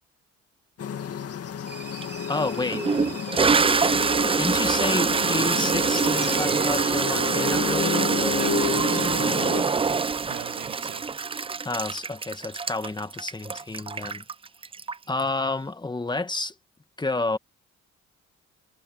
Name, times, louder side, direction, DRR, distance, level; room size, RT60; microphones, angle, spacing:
sound 1, 0.8-9.6, left 8 dB, 50° left, 2.1 m, -31 dB
sound 2, 1.7-8.0, right 6 dB, 35° right, 1.2 m, -44 dB
Toilet flush, 2.0-2.1 2.7-15.2, right 5 dB, 20° right, 0.4 m, -24 dB
voice 1, 2.3-2.9 4.4-8.1 11.6-14.2 15.1-16.5 17.0-17.4, left 3 dB, 15° left, 1.8 m, -30 dB
voice 2, 8.4-11.0, right 13 dB, 80° right, 1.4 m, -41 dB
cardioid pair, 90°, 30 cm